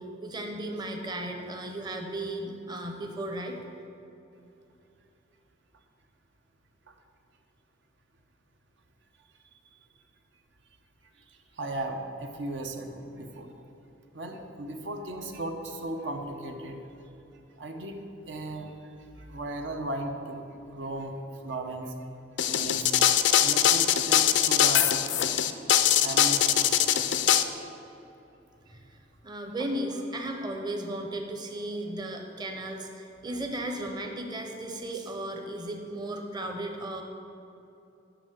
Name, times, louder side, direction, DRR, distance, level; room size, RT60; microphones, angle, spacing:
voice 1, 0.0-3.6 28.7-37.0, right 1 dB, 25° right, 3 dB, 0.7 m, -35 dB
voice 2, 11.3-13.5 14.1-16.8 17.6-18.0 18.3-20.5 20.7-21.1 21.4-21.9 22.4-23.1 23.4-24.9 26.0-26.8, right 1 dB, 75° right, 4 dB, 0.8 m, -36 dB
sound 1, 22.4-27.4, left 11 dB, 70° left, 0.4 m, -22 dB
6.9 x 5.9 x 7.5 m, 2.9 s
head